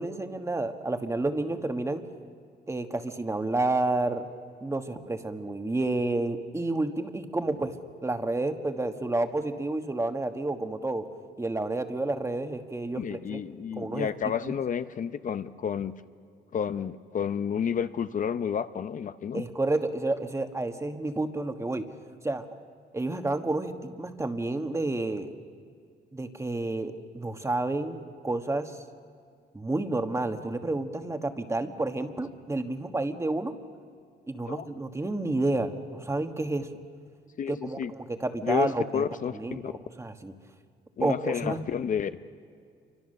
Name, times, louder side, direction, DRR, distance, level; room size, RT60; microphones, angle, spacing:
voice 1, 0.0-2.0 2.7-4.3 4.6-7.8 8.0-11.1 11.4-13.0 13.3-13.4 13.8-14.1 19.3-21.9 22.2-22.4 22.9-25.3 26.1-28.7 29.5-33.5 34.3-36.7 37.5-39.0 39.3-40.3 41.0-41.6, right 2 dB, 15° right, 7 dB, 1.5 m, -30 dB
voice 2, 12.9-15.9 16.5-19.4 34.5-34.7 37.4-37.9 38.4-39.4 39.6-39.7 41.0-42.2, left 7 dB, 45° left, 11 dB, 0.7 m, -30 dB
28.5 x 24.5 x 6.6 m, 2.2 s
cardioid pair, 115°, 18 cm